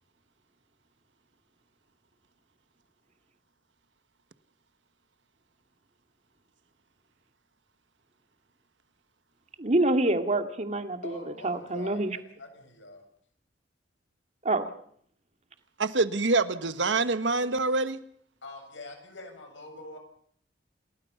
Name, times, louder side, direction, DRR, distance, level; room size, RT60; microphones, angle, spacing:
voice 1, 9.6-12.1 14.4-14.7, right 2 dB, 40° right, 7 dB, 2.2 m, -26 dB
voice 2, 11.0-13.0 18.4-20.0, left 2 dB, 85° left, 4 dB, 7.7 m, -44 dB
voice 3, 15.8-18.0, right 3 dB, 80° right, 12 dB, 1.4 m, -26 dB
29.0 x 18.5 x 5.8 m, 0.62 s
head